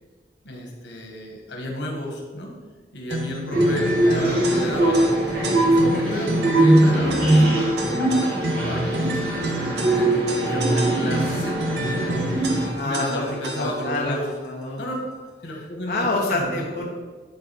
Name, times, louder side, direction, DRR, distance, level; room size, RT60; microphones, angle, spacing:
voice 1, 0.4-2.5 2.9-5.2 5.6-12.3 12.5-14.3 14.8-14.9 15.4-16.8, equal, 85° left, 1 dB, 1.7 m, -32 dB
sound 1, 3.1-14.0, right 1 dB, 70° right, 0.9 m, -31 dB
sound 2, 3.5-12.7, right 1 dB, 55° right, 2.2 m, -21 dB
voice 2, 4.1-4.4 12.7-13.3 13.6-14.9 15.4-16.9, left 2 dB, 55° left, -1 dB, 0.8 m, -28 dB
11.0 x 4.0 x 4.3 m, 1.4 s
head